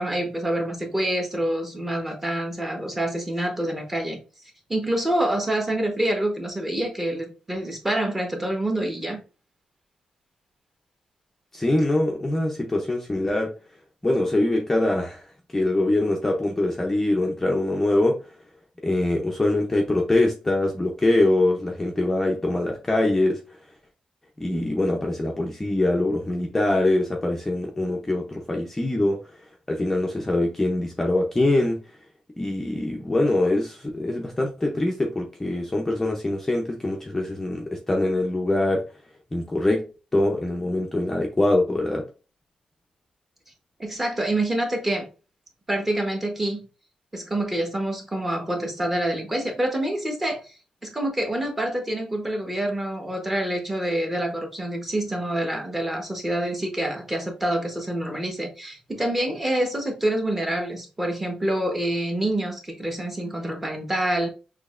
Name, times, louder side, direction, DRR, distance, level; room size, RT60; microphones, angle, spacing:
voice 1, 0.0-4.2 4.7-9.2 43.8-45.1 45.7-46.7 47.1-50.4 50.8-64.3, right 1 dB, 10° right, 1.1 m, -26 dB
voice 2, 11.5-13.5 14.0-15.2 15.5-18.2 18.8-23.4 24.4-29.2 29.7-31.8 32.4-38.9 39.3-39.8 40.1-42.0, left 1 dB, 10° left, 0.6 m, -23 dB
6.1 x 3.0 x 2.5 m
wide cardioid pair, 175°, 2 cm